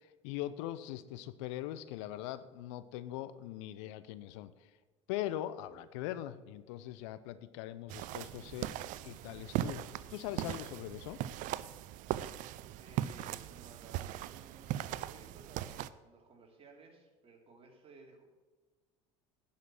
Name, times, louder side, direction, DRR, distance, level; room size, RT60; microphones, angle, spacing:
voice 1, 0.0-4.5 5.1-8.7 9.0-9.8 10.1-11.2, left 13 dB, 70° left, 14 dB, 0.6 m, -41 dB
sound 1, 7.9-15.9, right 13 dB, 55° right, 0.5 m, -39 dB
voice 2, 12.8-18.3, right 3 dB, 40° right, 1 dB, 2.7 m, -57 dB
10.5 x 5.8 x 7.6 m, 1.3 s
hypercardioid pair, 70°, 16 cm